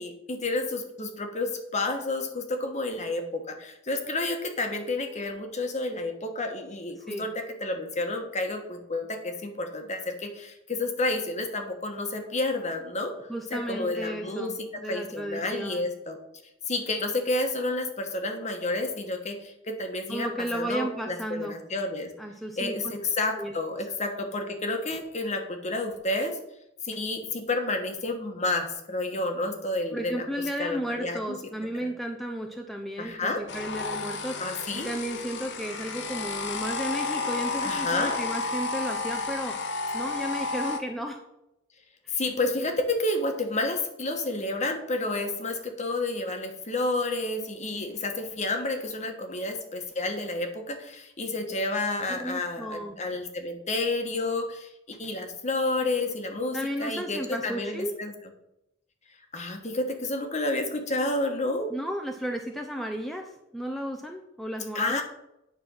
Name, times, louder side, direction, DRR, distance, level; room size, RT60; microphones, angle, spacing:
voice 1, 0.0-13.1 13.5-16.2 16.7-22.1 22.6-26.4 26.8-30.3 30.6-31.4 31.8-31.9 33.0-33.4 34.4-34.9 37.6-38.2 42.1-58.1 59.3-61.7 64.7-65.0, left 2 dB, 35° left, 5 dB, 1.2 m, -30 dB
voice 2, 13.3-15.9 20.1-21.6 22.2-22.7 23.4-23.5 29.9-34.4 34.7-39.6 39.9-41.2 42.0-42.2 52.1-53.0 56.5-57.9 61.7-65.0, right 1 dB, ahead, 3 dB, 0.6 m, -34 dB
sound 1, 33.5-40.8, left 3 dB, 65° left, 0.9 m, -32 dB
9.4 x 4.3 x 6.3 m, 0.85 s
head